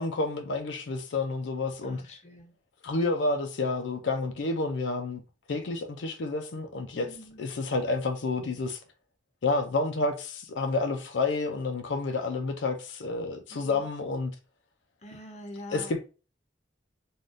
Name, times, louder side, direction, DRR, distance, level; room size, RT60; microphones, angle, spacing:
voice 1, 0.0-2.0 2.8-5.2 5.5-7.1 7.4-8.8 9.4-14.3 15.7-16.0, left 3 dB, 80° left, 0.5 m, -29 dB
voice 2, 1.8-2.5 6.9-7.4 13.5-13.8 15.0-15.9, equal, 40° left, 0.6 m, -45 dB
3.5 x 2.3 x 2.6 m
head